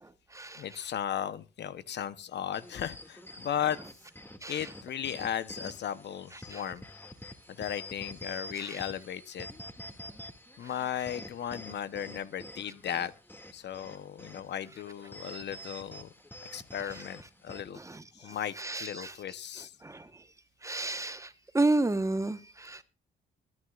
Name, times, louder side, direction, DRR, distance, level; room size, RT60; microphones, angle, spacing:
voice 1, 0.0-0.6 4.4-4.7 6.5-6.6 8.5-8.8 17.8-19.1 19.8-20.1 20.6-22.8, right 2 dB, 15° right, 1.2 m, -32 dB
voice 2, 0.6-3.8 4.5-6.8 7.6-9.5 10.6-13.1 13.5-16.1 16.5-17.8 18.1-19.7, left 9 dB, 60° left, 0.9 m, -36 dB
sound 1, 2.5-17.7, left 1 dB, 10° left, 2.3 m, -47 dB
22.0 x 9.7 x 2.5 m
cardioid pair, 90°, 20 cm